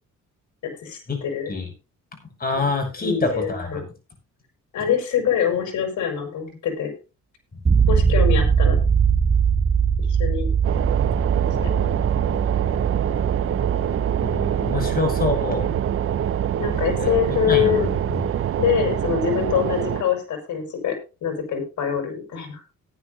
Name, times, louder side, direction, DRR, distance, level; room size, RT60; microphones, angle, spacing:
voice 1, 0.6-1.5 2.5-2.6 3.0-3.8 4.7-6.9 7.9-8.8 10.1-10.5 11.6-11.9 16.6-17.8 18.6-21.0 21.2-22.6, left 8 dB, 75° left, 4 dB, 5.4 m, -24 dB
voice 2, 2.4-3.8 14.2-15.8 17.0-17.1 17.5-18.3, left 3 dB, 30° left, 4 dB, 6.4 m, -26 dB
sound 1, 7.7-19.6, right 6 dB, 20° right, 0.9 m, -23 dB
sound 2, 10.6-20.0, right 11 dB, 45° right, 0.5 m, -25 dB
18.0 x 10.5 x 2.7 m, 0.31 s
cardioid pair, 90°, 30 cm